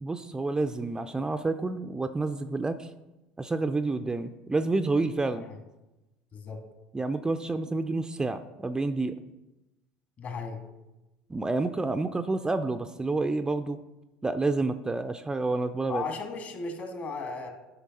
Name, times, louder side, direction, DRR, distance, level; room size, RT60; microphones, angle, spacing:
voice 1, 0.0-2.9 3.4-5.5 6.9-9.2 11.3-13.8 14.2-16.0, right 3 dB, 15° right, 9 dB, 0.4 m, -29 dB
voice 2, 6.3-6.6 10.2-10.6 15.9-17.5, left 4 dB, 45° left, 4 dB, 2.0 m, -35 dB
9.7 x 5.8 x 4.2 m, 1.0 s
hypercardioid pair, 70°, 4 cm